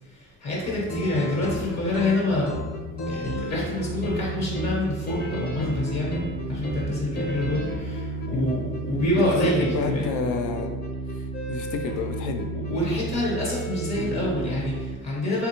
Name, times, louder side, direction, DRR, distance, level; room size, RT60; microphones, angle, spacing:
voice 1, 0.0-2.6 3.1-10.0 12.5-15.5, left 1 dB, 60° left, -4 dB, 1.2 m, -27 dB
sound 1, 0.6-14.9, right 1 dB, 35° left, 0.7 m, -32 dB
voice 2, 8.9-10.8 11.1-12.5, left 5 dB, 75° left, 5 dB, 0.5 m, -30 dB
3.4 x 2.3 x 2.9 m, 1.3 s
cardioid pair, 90°, 30 cm